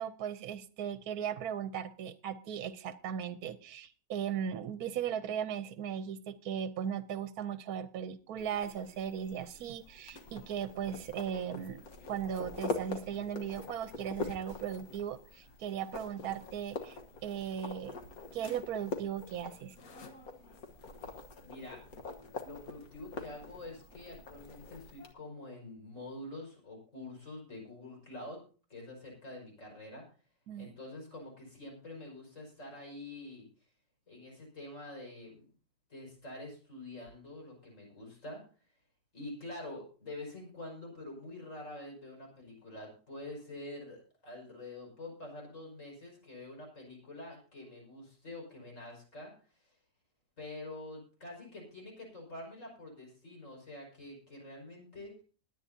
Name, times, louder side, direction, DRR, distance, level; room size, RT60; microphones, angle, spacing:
voice 1, 0.0-11.8 12.1-17.9 18.3-19.7 30.5-30.7, right 8 dB, 75° right, 12 dB, 1.2 m, -37 dB
sound 1, 8.4-25.1, left 3 dB, 65° left, 1.7 m, -44 dB
voice 2, 21.4-21.8 22.4-28.4 28.7-30.0 30.6-33.5 34.1-35.5 35.9-38.4 39.1-49.3 49.6-49.7 50.4-55.1, left 2 dB, 50° left, 1 dB, 5.9 m, -46 dB
21.0 x 9.5 x 2.8 m, 0.38 s
omnidirectional pair, 1.6 m